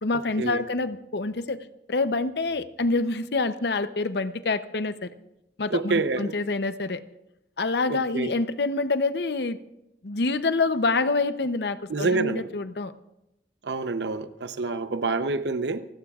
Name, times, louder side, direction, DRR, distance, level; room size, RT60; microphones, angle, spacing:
voice 1, 0.0-5.1 5.6-7.0 7.6-9.6 10.0-12.9, left 3 dB, 70° left, 12 dB, 0.7 m, -26 dB
voice 2, 5.7-6.3 7.9-8.3 11.9-12.5 13.6-15.9, right 3 dB, 80° right, 11 dB, 0.7 m, -27 dB
28.0 x 17.0 x 2.4 m, 0.89 s
head